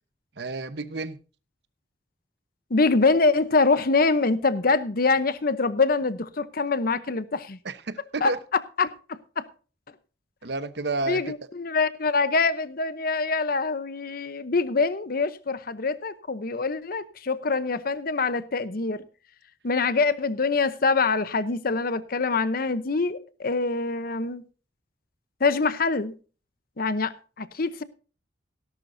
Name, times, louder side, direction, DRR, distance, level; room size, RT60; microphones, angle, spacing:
voice 1, 0.4-1.2 7.6-8.4 10.4-11.3, right 3 dB, 65° right, 1.0 m, -30 dB
voice 2, 2.7-7.6 8.2-8.3 8.8-9.5 11.1-19.1 19.6-24.4 25.4-26.1 26.8-27.8, left 4 dB, 55° left, 0.8 m, -24 dB
17.0 x 11.5 x 2.7 m
head